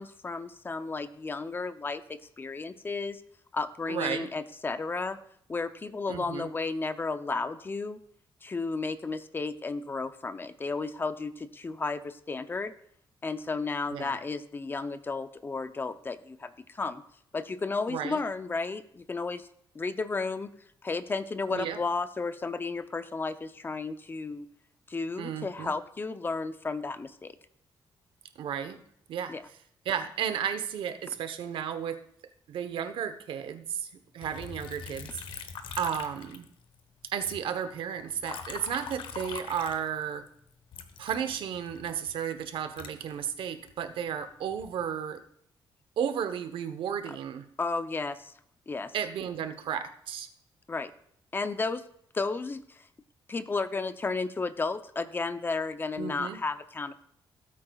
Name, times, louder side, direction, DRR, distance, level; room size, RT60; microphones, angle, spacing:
voice 1, 0.0-3.2 3.5-5.2 5.5-8.0 8.4-12.7 13.2-17.0 17.3-19.5 19.7-20.5 20.8-24.5 24.9-27.3 29.3-29.4 47.1-47.2 47.6-48.3 48.7-48.9 50.7-50.9 51.3-51.8 52.1-52.9 53.3-56.9, left 3 dB, 25° left, 12 dB, 0.5 m, -33 dB
voice 2, 3.9-4.3 6.1-6.5 13.9-14.2 17.9-18.2 21.5-21.8 25.2-25.7 28.4-28.8 29.1-29.3 29.8-32.0 32.5-35.4 35.8-36.5 37.1-40.3 41.0-45.2 46.0-47.5 48.9-50.3 56.0-56.4, right 8 dB, 80° right, 9 dB, 0.9 m, -33 dB
Liquid, 34.2-36.8 37.1-40.3 40.7-43.7 44.3-44.8, left 6 dB, 80° left, 0.9 m, -43 dB
16.5 x 8.7 x 2.3 m, 0.68 s
cardioid pair, 135°, 9 cm